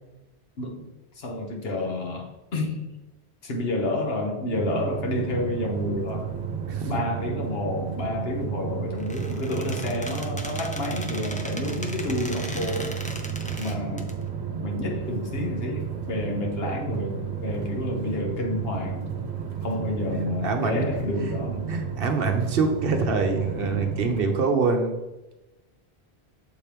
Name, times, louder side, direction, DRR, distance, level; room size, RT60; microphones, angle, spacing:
voice 1, 0.6-0.9 1.2-2.9 3.4-6.3 6.9-13.0 13.6-14.1 14.6-19.1 19.6-21.7 23.6-24.0, left 2 dB, 65° left, 1 dB, 1.3 m, -30 dB
sound 1, 4.5-24.2, right 7 dB, 80° right, 1.0 m, -32 dB
voice 2, 6.7-7.0 13.5-13.9 20.4-21.4 21.7-25.0, right 4 dB, 65° right, 5 dB, 0.9 m, -25 dB
Squeak, 9.0-14.1, left 1 dB, 10° left, 0.4 m, -38 dB
7.0 x 4.4 x 3.4 m, 1.0 s
omnidirectional pair, 1.1 m